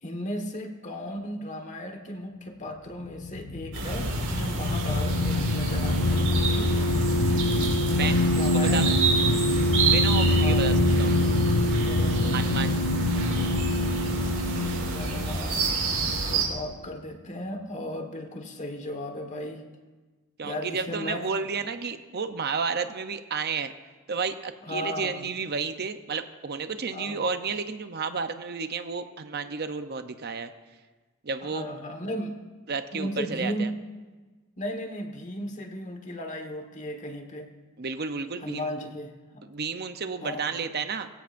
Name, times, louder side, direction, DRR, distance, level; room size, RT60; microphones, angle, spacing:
voice 1, 0.0-6.9 8.3-8.9 10.4-10.7 11.9-12.4 14.9-19.6 20.4-21.3 24.6-25.3 26.9-27.3 31.4-32.4 32.9-33.8 34.6-37.5 38.4-39.4 40.2-40.6, left 1 dB, 35° left, 5 dB, 1.5 m, -36 dB
sound 1, 3.0-16.7, left 2 dB, 60° left, 0.7 m, -25 dB
sound 2, 3.7-16.4, right 4 dB, 70° right, 4.5 m, -29 dB
voice 2, 7.9-8.9 9.8-11.1 12.3-12.9 20.4-23.7 24.1-30.5 31.2-31.7 32.7-33.7 37.8-38.7 39.4-41.1, right 5 dB, 45° right, 9 dB, 0.7 m, -32 dB
23.0 x 15.5 x 2.6 m, 1.3 s
head